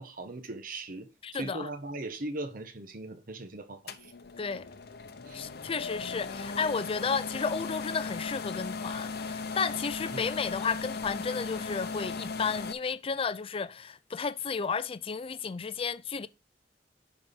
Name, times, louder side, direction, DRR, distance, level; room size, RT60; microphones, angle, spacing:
voice 1, 0.0-4.1 5.3-5.4 10.1-10.3, right 2 dB, 55° right, 1.2 m, -39 dB
voice 2, 1.2-1.7 4.4-4.7 5.3-16.3, left 5 dB, 30° left, 0.4 m, -33 dB
sound 1, 3.9-12.7, left 4 dB, 65° left, 0.8 m, -37 dB
10.5 x 4.2 x 3.7 m
head